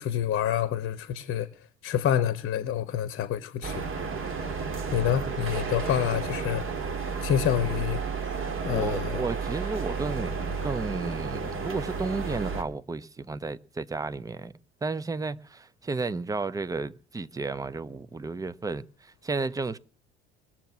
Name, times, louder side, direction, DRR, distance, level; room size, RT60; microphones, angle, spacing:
voice 1, 0.0-1.5 1.8-3.8 4.9-6.6 7.2-8.0 8.6-9.2, left 10 dB, 40° left, 1.0 m, -27 dB
sound 1, 3.6-12.6, right 5 dB, 40° right, 2.0 m, -32 dB
voice 2, 8.7-14.5 14.8-19.8, right 3 dB, 10° right, 0.6 m, -33 dB
20.5 x 7.4 x 6.1 m
figure-of-eight pair, 60°, 33 cm